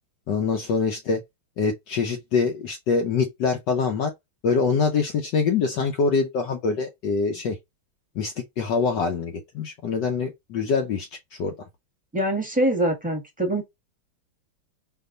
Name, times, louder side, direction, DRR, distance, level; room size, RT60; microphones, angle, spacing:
voice 1, 0.3-1.2 1.6-4.1 4.4-7.6 8.1-11.5, left 5 dB, 65° left, 1.2 m, -24 dB
voice 2, 12.1-13.6, right 1 dB, 5° right, 1.2 m, -24 dB
4.4 x 2.9 x 3.8 m
omnidirectional pair, 2.3 m